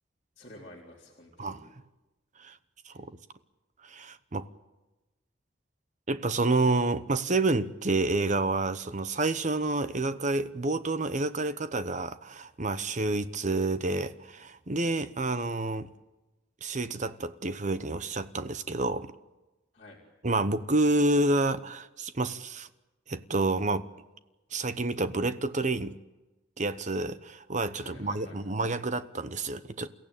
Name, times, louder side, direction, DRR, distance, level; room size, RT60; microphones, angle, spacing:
voice 1, 0.4-1.7 2.9-3.0 19.7-20.0 27.8-28.5, left 1 dB, 35° left, 3.8 m, -50 dB
voice 2, 2.9-3.2 3.8-4.5 6.1-15.9 16.6-19.1 20.2-22.7 23.1-23.9 24.5-26.0 26.6-29.9, right 2 dB, 40° right, 0.9 m, -29 dB
29.5 x 15.0 x 9.0 m
head